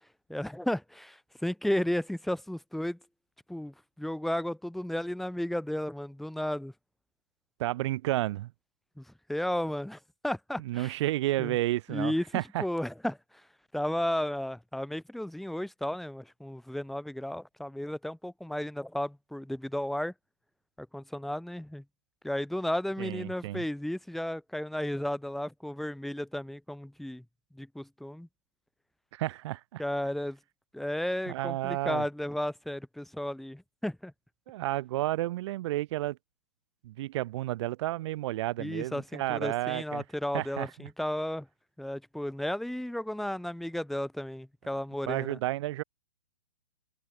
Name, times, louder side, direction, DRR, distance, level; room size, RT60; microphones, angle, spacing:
voice 1, 0.3-3.0 3.5-6.7 9.0-10.9 11.4-11.6 11.9-13.2 13.7-20.1 20.8-21.8 22.2-27.2 27.5-28.3 29.8-30.4 30.7-34.1 38.6-41.5 41.8-45.4, left 1 dB, ahead, 1.6 m, -33 dB
voice 2, 7.6-8.5 10.6-12.6 23.0-23.6 29.1-29.8 31.3-32.0 34.5-36.2 36.8-40.0 40.3-40.9 45.1-45.8, right 16 dB, 45° right, 1.4 m, -31 dB
hypercardioid pair, 130°, 21 cm